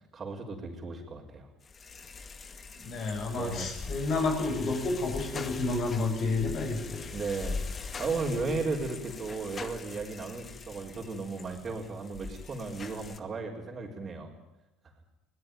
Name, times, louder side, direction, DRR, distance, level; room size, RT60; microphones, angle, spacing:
voice 1, 0.1-1.5 3.4-3.7 7.1-7.6 8.0-14.3, right 3 dB, 30° right, -4 dB, 4.6 m, -35 dB
sound 1, 1.6-13.2, left 4 dB, 30° left, 2.0 m, -42 dB
voice 2, 2.8-7.1, left 3 dB, 50° left, 5 dB, 6.7 m, -30 dB
22.0 x 18.0 x 9.5 m, 0.96 s
hypercardioid pair, 75°, 0 cm